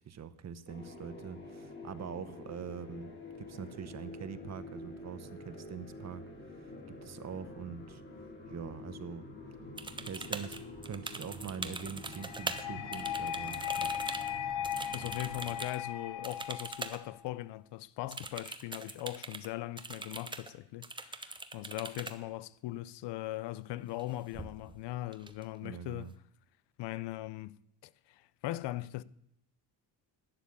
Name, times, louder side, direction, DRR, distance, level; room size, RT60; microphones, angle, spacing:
voice 1, 0.1-3.1 3.4-6.7 7.0-8.0 8.5-9.3 10.0-14.0 25.6-26.1, right 7 dB, 40° right, 0.9 m, -44 dB
sound 1, 0.7-15.6, left 1 dB, 25° left, 2.2 m, -48 dB
sound 2, 9.8-12.6 12.9-15.8 16.2-17.0 17.3-17.4 18.1-19.5 19.8-20.5 20.8-22.1 23.8-24.0 24.3-24.8 25.1-25.8, right 3 dB, 10° right, 0.8 m, -42 dB
sound 3, 12.1-17.1, left 9 dB, 90° left, 1.4 m, -38 dB
voice 2, 14.9-26.1 26.8-27.6 28.1-29.0, left 16 dB, 70° left, 0.6 m, -40 dB
12.0 x 9.7 x 8.5 m
cardioid pair, 145°, 43 cm